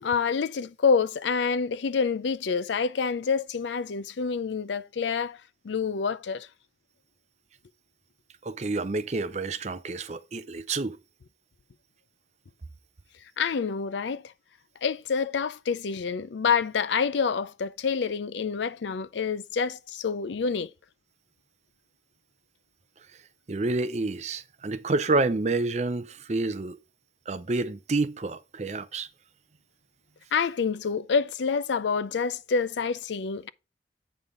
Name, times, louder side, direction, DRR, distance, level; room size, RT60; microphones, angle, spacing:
voice 1, 0.0-5.4 5.6-6.5 13.4-14.2 14.8-20.7 30.3-33.5, left 5 dB, 85° left, 0.5 m, -27 dB
voice 2, 8.4-11.0 23.5-26.8 27.3-29.1, right 3 dB, 40° right, 0.6 m, -28 dB
8.3 x 5.5 x 3.7 m
head